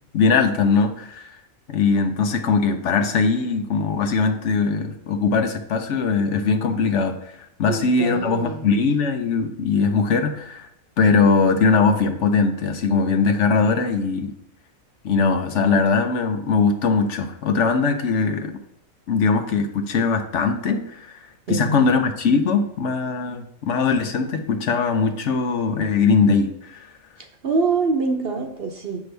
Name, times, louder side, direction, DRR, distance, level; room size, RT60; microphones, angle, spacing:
voice 1, 0.1-1.3 1.7-7.2 7.6-10.7 11.0-14.3 15.0-18.6 19.1-26.9, left 4 dB, 65° left, 7 dB, 0.9 m, -21 dB
voice 2, 7.7-8.7 21.5-21.9 27.4-29.0, right 4 dB, 50° right, 4 dB, 0.9 m, -24 dB
7.9 x 6.0 x 3.3 m, 0.77 s
omnidirectional pair, 1.4 m